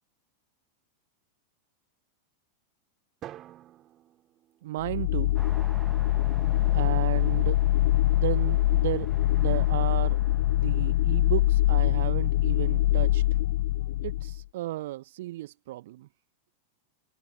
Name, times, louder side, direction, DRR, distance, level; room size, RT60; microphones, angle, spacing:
Drum, 3.2-5.5, right 13 dB, 30° right, 7.6 m, -48 dB
voice 1, 4.6-5.4 6.7-7.6 8.1-9.1 9.3-10.2 10.5-13.2 14.0-16.1, right 16 dB, 55° right, 1.2 m, -34 dB
sound 1, 4.8-14.4, left 15 dB, 55° left, 0.3 m, -24 dB
sound 2, 5.3-13.3, right 4 dB, 10° right, 2.0 m, -49 dB
figure-of-eight pair, 90°, 0 cm